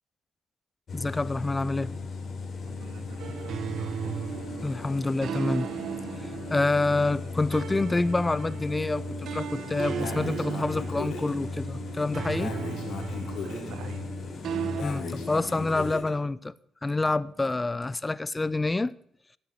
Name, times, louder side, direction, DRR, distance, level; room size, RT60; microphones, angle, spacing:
sound 1, 0.9-15.9, left 4 dB, 50° left, 3.3 m, -37 dB
voice 1, 0.9-2.0 4.6-5.7 6.5-9.0 9.3-12.5 14.8-16.5 16.8-18.9, left 2 dB, 20° left, 0.5 m, -27 dB
voice 2, 2.7-4.1 13.4-14.1, right 5 dB, 85° right, 2.2 m, -44 dB
sound 2, 3.2-14.8, right 8 dB, 70° right, 1.0 m, -36 dB
Breathing, 10.0-11.3 12.4-13.7 14.8-16.1, left 5 dB, 75° left, 3.7 m, -37 dB
18.0 x 8.8 x 6.8 m
cardioid pair, 90°, 0 cm